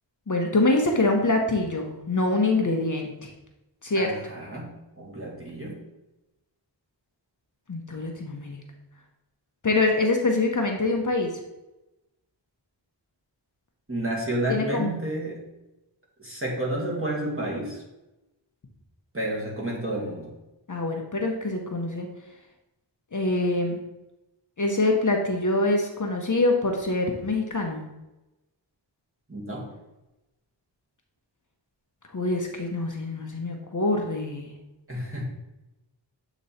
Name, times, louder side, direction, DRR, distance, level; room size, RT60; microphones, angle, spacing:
voice 1, 0.3-3.3 3.8-4.1 7.7-8.6 9.6-11.3 14.5-15.0 20.7-22.1 23.1-23.8 24.6-27.8 32.1-34.5, left 2 dB, 40° left, 2 dB, 0.8 m, -25 dB
voice 2, 4.0-5.8 13.9-15.4 16.2-17.8 19.1-20.3 29.3-29.7 34.9-35.3, right 1 dB, 30° right, -4 dB, 1.9 m, -31 dB
7.6 x 3.0 x 4.1 m, 0.98 s
wide cardioid pair, 60°, 45 cm